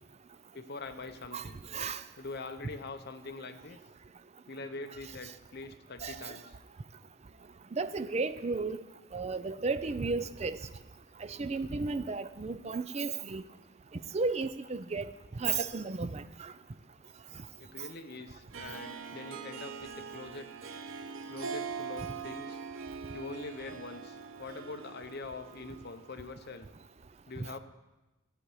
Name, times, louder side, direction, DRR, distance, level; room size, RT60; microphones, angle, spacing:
voice 1, 0.5-1.6 2.2-3.8 4.5-6.6 17.6-20.8 21.3-22.6 23.1-26.7 27.3-27.6, left 3 dB, 50° left, 8 dB, 0.8 m, -44 dB
voice 2, 6.0-6.4 7.7-8.8 9.1-10.6 11.3-13.4 14.1-15.1 15.4-16.5, right 4 dB, 30° right, 13 dB, 0.4 m, -33 dB
Harp, 18.5-26.2, right 5 dB, 70° right, 0.7 m, -42 dB
13.5 x 8.7 x 4.9 m, 1.1 s
head